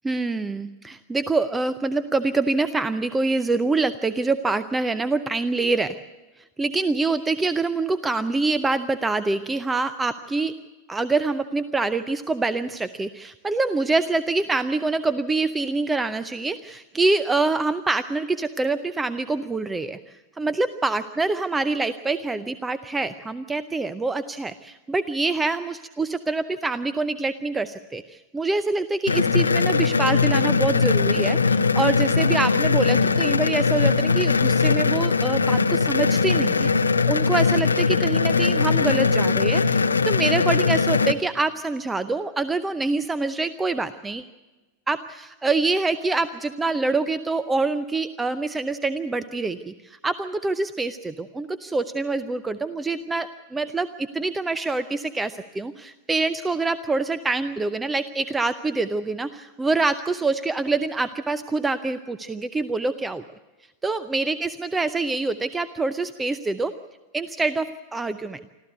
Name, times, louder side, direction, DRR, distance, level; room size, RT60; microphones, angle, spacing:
voice 1, 0.0-6.0 6.6-10.5 10.9-36.7 37.1-44.2 44.9-63.2 63.8-66.7 67.1-68.4, right 3 dB, 10° right, 14 dB, 0.6 m, -25 dB
sound 1, 29.1-41.1, left 4 dB, 75° left, 0.7 m, -20 dB
26.0 x 14.0 x 8.1 m, 1.2 s
figure-of-eight pair, 90°, 0 cm